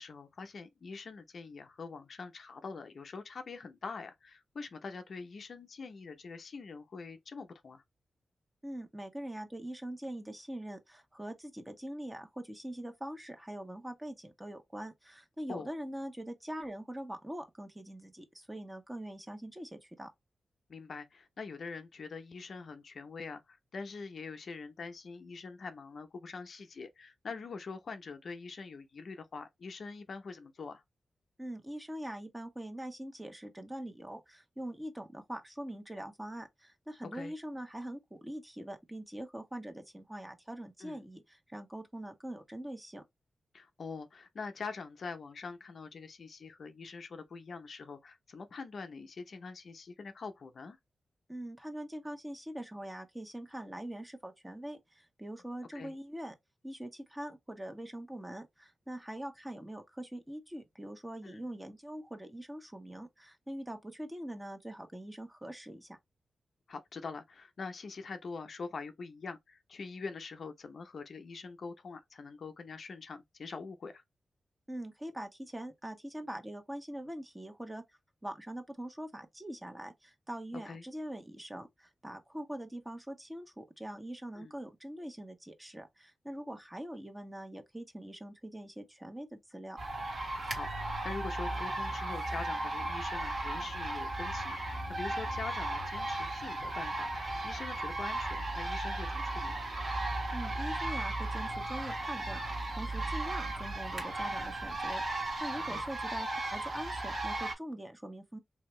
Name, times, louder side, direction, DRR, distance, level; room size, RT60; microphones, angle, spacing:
voice 1, 0.0-7.8 15.5-15.7 20.7-30.8 37.1-37.3 40.8-41.0 43.5-50.8 55.7-55.9 61.2-61.4 66.7-74.0 80.5-80.8 84.4-84.5 90.5-99.7 105.6-105.8, left 4 dB, 65° left, 0.6 m, -44 dB
voice 2, 8.6-20.1 31.4-43.0 51.3-56.3 56.6-66.0 74.7-77.8 78.2-89.8 100.3-108.4, right 1 dB, 15° right, 1.1 m, -43 dB
sound 1, 89.8-107.5, right 2 dB, 55° right, 1.5 m, -36 dB
3.5 x 2.7 x 3.1 m
cardioid pair, 55°, 0 cm